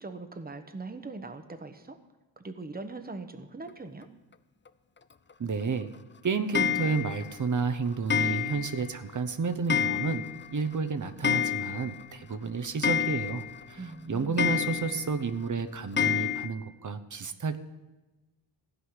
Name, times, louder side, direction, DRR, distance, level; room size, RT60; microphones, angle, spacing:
voice 1, 0.0-2.0 2.4-4.1 13.8-14.5, right 3 dB, 20° right, 8 dB, 1.1 m, -41 dB
voice 2, 5.4-5.9 6.2-10.2 10.5-17.6, right 5 dB, 40° right, 9 dB, 0.9 m, -31 dB
Clock, 6.5-7.3 8.1-8.8 9.1-9.2 9.7-10.5 10.7-10.8 11.1-12.0 12.3-12.4 12.8-13.6 14.4-15.1 16.0-16.5, left 8 dB, 25° left, 0.5 m, -28 dB
16.0 x 5.6 x 9.8 m, 1.1 s
wide cardioid pair, 105°, 45 cm